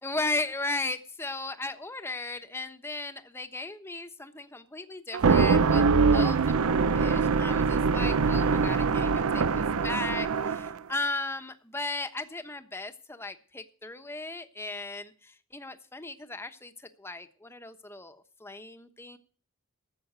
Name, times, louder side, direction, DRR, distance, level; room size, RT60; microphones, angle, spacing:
voice 1, 0.0-9.4 9.8-19.2, left 2 dB, 10° left, 8 dB, 1.0 m, -36 dB
sound 1, 5.1-10.8, right 5 dB, 85° right, 0.6 m, -23 dB
13.0 x 7.8 x 7.9 m, 0.42 s
head